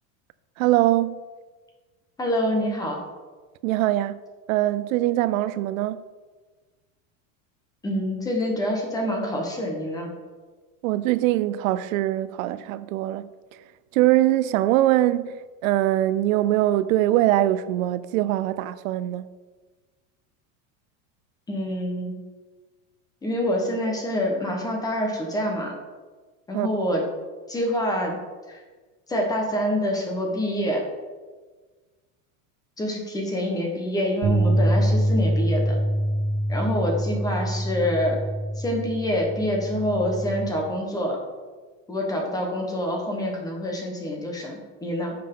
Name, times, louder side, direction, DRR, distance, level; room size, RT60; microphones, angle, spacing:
voice 1, 0.6-1.2 3.6-4.2 4.5-6.0 10.8-13.3 13.9-15.3 15.6-19.3 26.5-26.7, right 15 dB, 85° right, 0.5 m, -22 dB
voice 2, 2.2-3.0 7.8-10.1 21.5-22.1 23.2-25.7 26.5-27.0 27.5-28.2 28.5-28.6 29.1-30.8 32.8-35.8 36.5-38.2 38.6-41.2 41.9-45.1, equal, 10° left, 1.0 m, -26 dB
sound 1, 34.2-40.5, right 1 dB, 45° right, 2.1 m, -25 dB
9.5 x 5.7 x 3.7 m
supercardioid pair, 170°, 39 cm